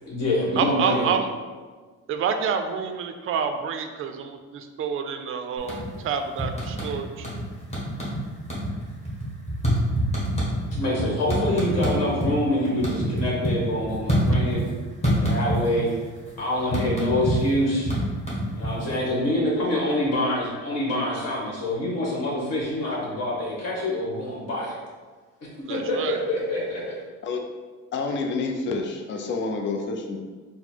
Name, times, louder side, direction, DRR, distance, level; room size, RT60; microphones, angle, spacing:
voice 1, 0.0-1.1 10.7-14.6 15.1-15.9 16.4-17.9 18.6-24.8 25.7-27.0, left 1 dB, 55° left, -5 dB, 1.5 m, -26 dB
voice 2, 0.6-1.3 2.1-7.3 25.7-26.2, right 6 dB, 45° right, 7 dB, 0.4 m, -28 dB
sound 1, 5.6-6.1 6.4-7.4 7.7-8.2 8.4-12.3 12.6-14.7 15.0-19.0, equal, 20° left, 1.4 m, -25 dB
voice 3, 27.9-30.2, left 3 dB, 40° left, 3 dB, 0.5 m, -28 dB
4.2 x 2.1 x 4.4 m, 1.4 s
cardioid pair, 120°, 31 cm